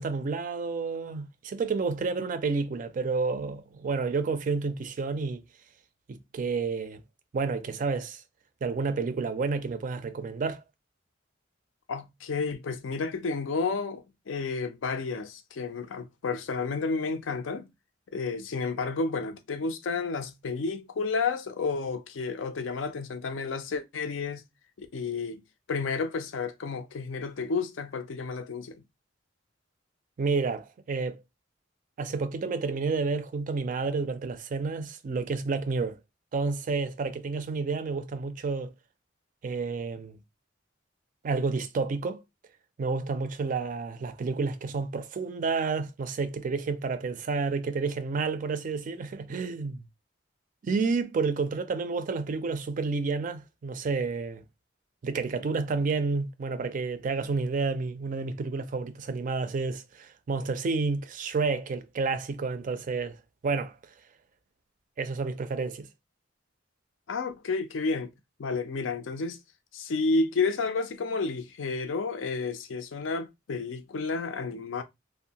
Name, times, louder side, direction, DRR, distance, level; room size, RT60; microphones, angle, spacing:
voice 1, 0.0-5.4 6.1-7.0 7.3-8.2 8.6-10.6 30.2-31.2 32.0-36.0 36.3-38.7 39.4-40.2 41.2-42.2 42.8-49.8 50.6-54.4 55.0-63.2 63.4-63.8 65.0-65.9, right 4 dB, 45° right, 0.3 m, -30 dB
voice 2, 11.9-17.7 18.1-24.4 24.8-25.4 25.7-28.8 67.1-68.1 68.4-69.4 69.7-74.8, left 4 dB, 90° left, 0.4 m, -31 dB
2.6 x 2.1 x 2.7 m
head